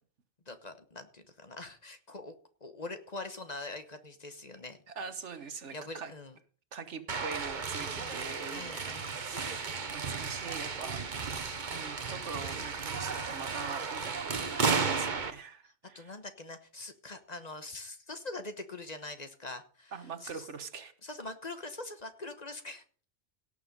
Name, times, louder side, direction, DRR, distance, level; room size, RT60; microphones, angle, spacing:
voice 1, 0.5-2.3 2.6-4.8 5.7-6.4 7.9-9.3 15.9-19.9 20.2-20.5 21.0-22.8, left 2 dB, 35° left, 9 dB, 1.2 m, -43 dB
voice 2, 5.0-6.1 6.7-11.0 11.7-16.1 19.9-20.9, right 5 dB, 75° right, 11 dB, 1.5 m, -43 dB
sound 1, 7.1-15.3, right 5 dB, 45° right, 1.1 m, -34 dB
17.0 x 6.9 x 5.3 m, 0.41 s
omnidirectional pair, 1.2 m